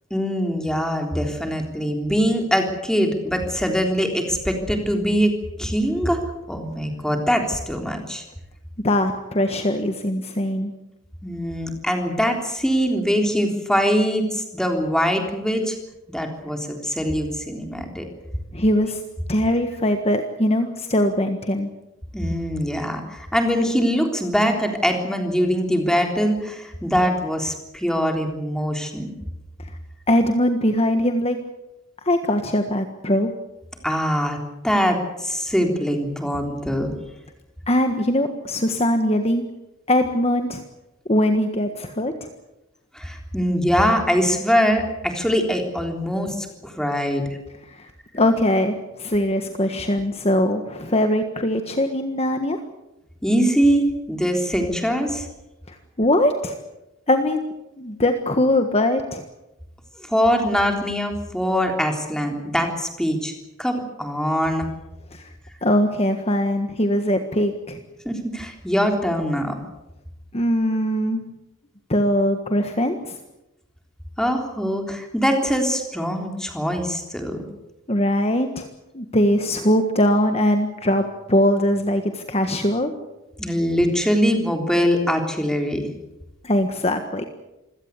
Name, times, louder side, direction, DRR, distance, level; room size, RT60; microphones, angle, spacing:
voice 1, 0.1-5.3 5.6-6.2 6.5-8.2 11.2-15.8 16.1-18.0 22.1-29.1 33.8-34.4 34.6-36.9 42.9-47.2 53.2-55.3 60.0-63.3 63.6-64.7 68.1-69.6 74.2-77.4 83.4-85.9, equal, 5° left, 3 dB, 3.6 m, -22 dB
voice 2, 8.8-10.7 18.5-19.0 19.3-21.7 30.1-31.4 32.0-33.3 37.7-39.4 39.9-40.6 41.1-42.3 47.7-47.9 48.1-48.7 49.0-52.6 55.7-56.5 57.1-57.4 57.8-59.2 65.1-65.3 65.6-67.8 70.3-71.2 71.9-73.2 77.9-78.7 78.9-82.9 86.4-87.2, left 1 dB, 30° left, 6 dB, 1.5 m, -21 dB
26.5 x 17.0 x 8.3 m, 0.94 s
head